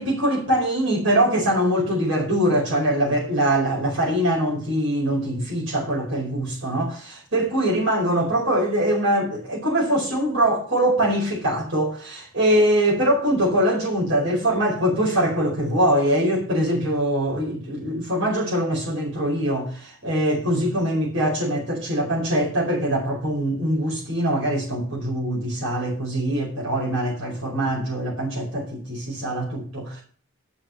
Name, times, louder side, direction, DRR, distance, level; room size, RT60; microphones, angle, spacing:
voice 1, 0.0-30.0, right 1 dB, 85° right, 4.9 m, -23 dB
13.5 x 5.1 x 7.3 m
head